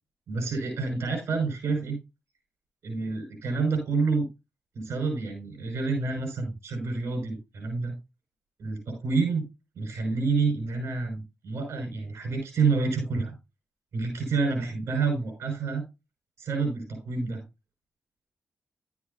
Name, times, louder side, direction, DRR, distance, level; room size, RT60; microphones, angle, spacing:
voice 1, 0.3-2.0 2.8-4.3 4.7-8.0 8.6-9.4 9.8-13.3 13.9-15.8 16.4-17.4, right 4 dB, 80° right, 4 dB, 6.1 m, -28 dB
12.5 x 8.1 x 2.8 m, 0.25 s
supercardioid pair, 45°, 5 cm